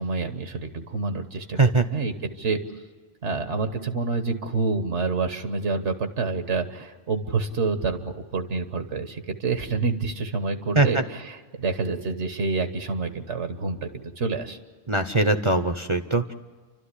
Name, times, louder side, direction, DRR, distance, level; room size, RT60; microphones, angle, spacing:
voice 1, 0.0-2.6 3.2-13.9 14.2-14.6, right 4 dB, 80° right, 8 dB, 1.6 m, -28 dB
voice 2, 14.9-16.3, right 3 dB, 30° right, 6 dB, 0.7 m, -21 dB
29.5 x 12.5 x 9.9 m, 1.4 s
omnidirectional pair, 1.2 m